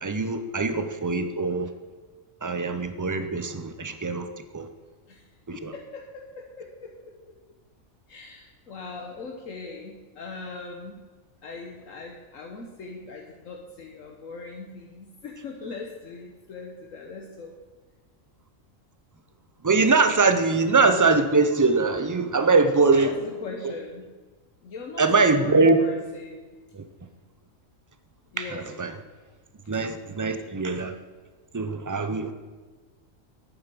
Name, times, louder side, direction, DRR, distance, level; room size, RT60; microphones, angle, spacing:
voice 1, 0.0-1.7 2.4-4.3 4.5-4.7 5.5-5.7 19.6-23.1 25.0-25.8 26.7-26.8 28.4-28.9 29.7-30.9 31.5-32.3, right 3 dB, 20° right, 9 dB, 0.5 m, -22 dB
voice 2, 5.1-7.2 8.1-11.0 11.4-17.6 23.0-24.1 24.6-26.4 28.3-28.8 29.7-29.8 30.3-30.4 30.7-30.8, left 3 dB, 75° left, 1 dB, 1.5 m, -40 dB
11.0 x 9.2 x 6.1 m, 1.4 s
omnidirectional pair, 1.4 m